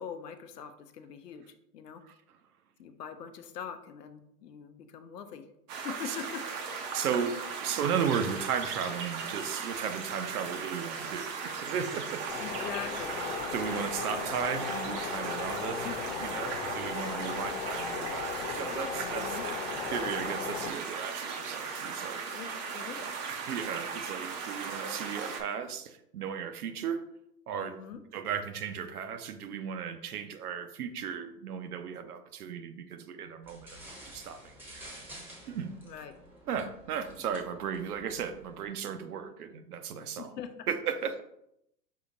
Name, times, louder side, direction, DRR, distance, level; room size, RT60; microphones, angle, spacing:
voice 1, 0.0-2.0 2.8-5.5 5.8-6.8 12.4-13.2 15.8-16.0 19.0-19.4 22.3-23.1 27.5-28.0 35.8-36.1 40.2-40.5, left 7 dB, 75° left, 9 dB, 0.7 m, -43 dB
sound 1, 5.7-25.4, right 5 dB, 30° right, 0.5 m, -37 dB
voice 2, 5.8-6.2 6.9-12.2 13.5-22.2 23.3-27.0 27.5-27.8 28.1-33.8 34.1-35.0 35.5-35.7 36.5-40.3 40.7-41.2, right 7 dB, 65° right, 8 dB, 0.7 m, -35 dB
sound 2, 12.3-20.7, left 6 dB, 40° left, 0.4 m, -37 dB
sound 3, 33.4-38.7, right 1 dB, 5° right, 0.8 m, -50 dB
5.6 x 2.8 x 2.6 m, 0.78 s
figure-of-eight pair, 110°, 49 cm